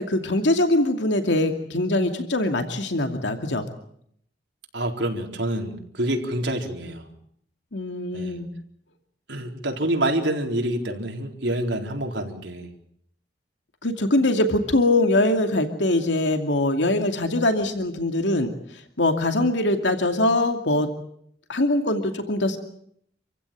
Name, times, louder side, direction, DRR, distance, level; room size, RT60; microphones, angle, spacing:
voice 1, 0.0-3.7 7.7-8.5 13.8-18.5 19.0-20.9 21.5-22.6, left 1 dB, 85° left, 6 dB, 2.5 m, -22 dB
voice 2, 4.7-7.1 8.1-8.4 9.3-12.7, right 1 dB, 80° right, 2 dB, 4.2 m, -27 dB
27.5 x 15.5 x 9.2 m, 0.69 s
head